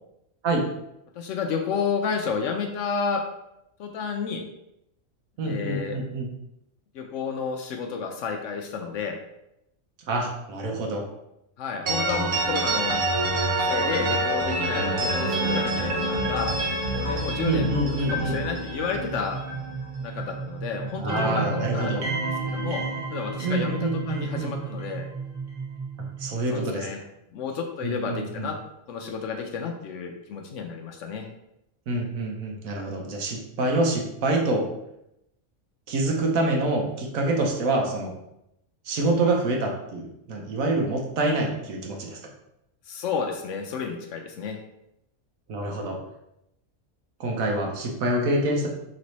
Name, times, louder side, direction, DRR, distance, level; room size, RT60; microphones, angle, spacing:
voice 1, 1.2-3.2 3.8-4.4 5.4-6.0 6.9-9.2 11.6-13.0 13.7-16.5 16.9-19.4 20.0-22.8 23.1-25.1 26.5-27.0 27.3-28.6 28.9-31.3 42.9-44.6, left 5 dB, 70° left, 3 dB, 0.8 m, -31 dB
voice 2, 5.4-6.3 10.1-11.0 17.4-18.4 20.9-22.0 23.4-24.5 26.2-26.9 27.8-28.5 31.9-34.7 35.9-38.1 38.8-42.2 45.5-46.0 47.2-48.7, right 2 dB, 75° right, 1 dB, 1.2 m, -26 dB
sound 1, 11.9-20.6 20.9-25.0, right 2 dB, 50° right, 0.9 m, -28 dB
sound 2, 18.9-26.5, right 5 dB, 10° right, 1.1 m, -36 dB
3.3 x 3.1 x 4.0 m, 0.83 s
omnidirectional pair, 1.5 m